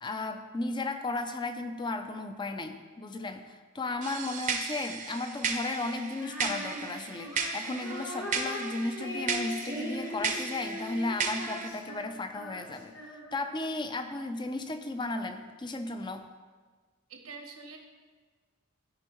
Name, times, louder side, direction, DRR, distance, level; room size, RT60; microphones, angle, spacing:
voice 1, 0.0-12.9 13.3-16.3, left 2 dB, 20° left, 7 dB, 0.4 m, -35 dB
sound 1, 4.0-11.7, right 5 dB, 35° right, 0.6 m, -35 dB
Female singing, 6.2-13.6, left 1 dB, 55° left, 1.4 m, -40 dB
voice 2, 17.1-17.8, right 4 dB, 75° right, 4 dB, 1.1 m, -45 dB
13.5 x 5.3 x 3.1 m, 1.5 s
head